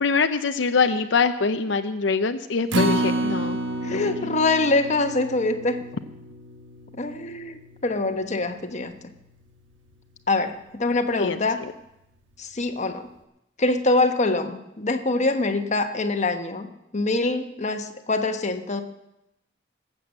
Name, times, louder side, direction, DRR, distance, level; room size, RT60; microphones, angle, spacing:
voice 1, 0.0-3.6 3.9-4.1 11.2-11.4, left 4 dB, 75° left, 8 dB, 0.6 m, -23 dB
Acoustic guitar, 2.7-9.0 9.4-9.5 9.9-10.0, right 1 dB, 85° right, 1.3 m, -30 dB
voice 2, 3.8-5.8 7.0-8.9 10.3-11.6 12.4-13.1 13.6-16.7 16.9-18.8, left 2 dB, 40° left, 6 dB, 1.2 m, -24 dB
19.5 x 7.7 x 7.6 m, 0.87 s
head